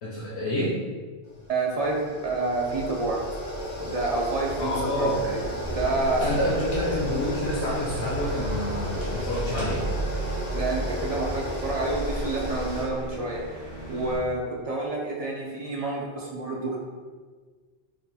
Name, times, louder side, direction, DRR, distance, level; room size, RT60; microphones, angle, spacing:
voice 1, 0.0-0.8 4.6-5.2 6.2-9.8, left 1 dB, 85° left, -6 dB, 0.9 m, -28 dB
sound 1, 1.2-12.8, equal, 70° left, 1.2 m, -32 dB
voice 2, 1.5-3.2 3.8-4.7 5.0-6.4 10.5-16.8, right 2 dB, 50° right, -3 dB, 0.5 m, -29 dB
sound 2, 5.6-14.2, equal, 25° left, 1.5 m, -37 dB
sound 3, 6.1-7.2 9.0-9.9 10.9-11.0 11.3-11.6, left 1 dB, 40° left, 1.1 m, -45 dB
4.0 x 2.8 x 2.3 m, 1.5 s
omnidirectional pair, 1.0 m